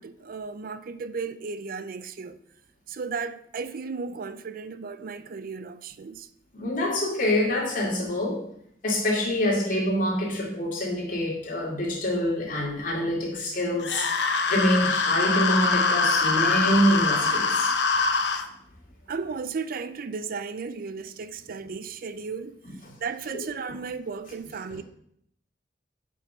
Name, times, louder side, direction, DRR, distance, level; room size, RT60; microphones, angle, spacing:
voice 1, 0.0-2.4 2.9-6.3 19.1-22.6 23.0-24.8, right 5 dB, 55° right, 0.4 m, -35 dB
voice 2, 6.5-8.4 8.8-17.7 22.7-22.8 24.7-24.8, left 1 dB, 50° left, 2.4 m, -26 dB
sound 1, 13.8-18.4, left 4 dB, 75° left, 0.8 m, -24 dB
7.5 x 5.5 x 5.6 m
head